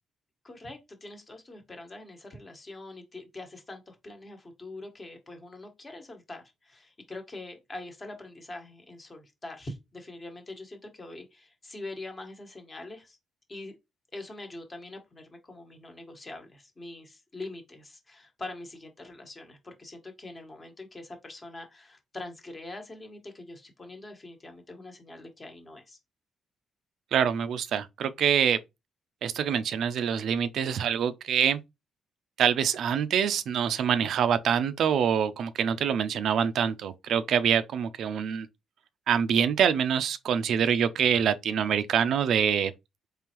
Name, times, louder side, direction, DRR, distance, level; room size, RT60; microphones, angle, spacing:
voice 1, 0.4-13.2 13.5-13.7 14.1-26.0, left 2 dB, 30° left, 1.2 m, -43 dB
voice 2, 27.1-28.6 29.2-31.6 32.4-38.5 39.1-42.7, right 8 dB, 70° right, 0.4 m, -25 dB
3.7 x 3.2 x 2.9 m
cardioid pair, 90°, 0 cm